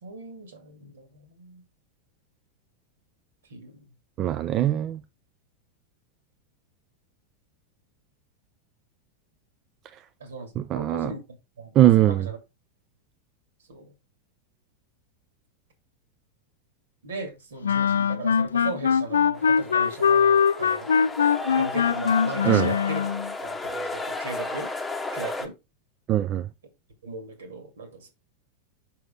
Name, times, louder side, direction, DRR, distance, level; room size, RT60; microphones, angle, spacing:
voice 1, 0.0-1.6 3.5-3.8 10.2-11.2 11.6-12.4 13.7-13.9 17.0-20.9 21.6-23.1 23.4-24.7 25.1-25.5 27.0-28.1, right 3 dB, 65° right, 2.3 m, -38 dB
voice 2, 4.2-5.0 10.6-11.1 11.8-12.3 22.4-22.7 26.1-26.5, right 13 dB, 30° right, 0.4 m, -21 dB
sound 1, 17.6-23.3, left 7 dB, 70° left, 0.4 m, -22 dB
sound 2, 19.3-25.5, left 3 dB, 5° left, 1.1 m, -34 dB
6.1 x 5.8 x 3.8 m
figure-of-eight pair, 90°, 0 cm